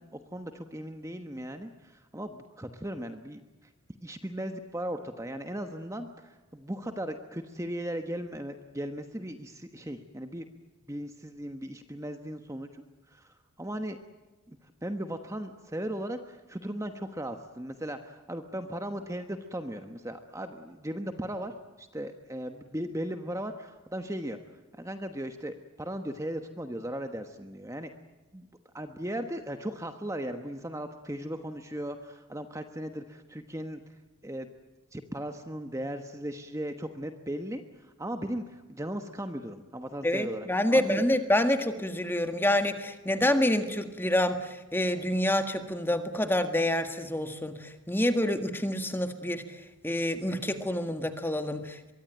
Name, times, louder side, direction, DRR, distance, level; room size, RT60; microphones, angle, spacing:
voice 1, 0.0-3.7 4.0-10.5 10.9-14.0 14.5-24.4 24.7-27.9 28.3-28.5 28.7-33.8 34.2-34.5 34.9-41.0, right 1 dB, 15° right, 7 dB, 1.2 m, -37 dB
voice 2, 40.0-51.9, left 1 dB, 10° left, 7 dB, 1.6 m, -27 dB
24.0 x 23.0 x 9.0 m, 1.2 s
head